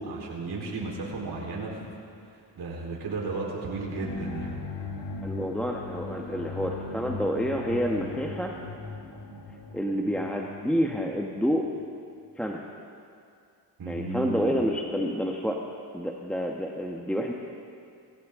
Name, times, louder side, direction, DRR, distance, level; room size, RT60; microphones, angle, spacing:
voice 1, 0.0-1.8 2.6-4.6 13.8-14.5, right 3 dB, 60° right, -2 dB, 4.0 m, -34 dB
sound 1, 3.9-11.7, left 3 dB, 80° left, 2.0 m, -39 dB
voice 2, 5.2-8.5 9.7-11.7 12.4-12.6 13.9-15.6 15.9-17.3, equal, 5° left, 0 dB, 1.2 m, -28 dB
21.0 x 16.5 x 3.7 m, 2.4 s
cardioid pair, 75°, 43 cm